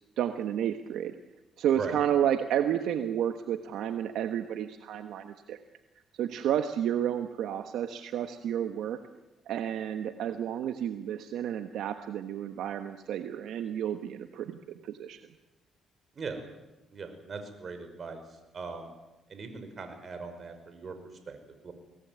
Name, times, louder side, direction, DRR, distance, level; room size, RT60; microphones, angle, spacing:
voice 1, 0.2-1.1 1.6-5.6 6.1-9.0 9.5-15.2, right 10 dB, 80° right, 8 dB, 1.3 m, -31 dB
voice 2, 16.9-18.2 18.5-18.9 19.3-20.9 21.3-21.4 21.6-21.7, right 4 dB, 45° right, 7 dB, 5.6 m, -39 dB
23.5 x 18.5 x 9.6 m, 1.0 s
cardioid pair, 90°, 0 cm